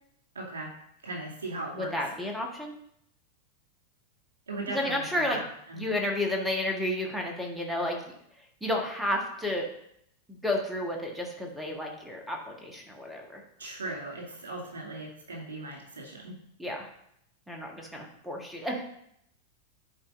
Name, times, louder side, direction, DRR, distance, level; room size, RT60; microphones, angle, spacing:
voice 1, 0.3-0.7 1.0-1.9 4.5-5.4 5.7-5.8 13.6-16.3, right 2 dB, 65° right, -3 dB, 2.5 m, -38 dB
voice 2, 1.7-2.7 4.7-5.4 5.7-8.1 8.6-9.7 10.3-13.4 16.6-16.9 17.5-18.9, left 1 dB, 5° right, 1 dB, 1.4 m, -31 dB
11.0 x 4.5 x 2.6 m, 0.73 s
figure-of-eight pair, 90°, 0 cm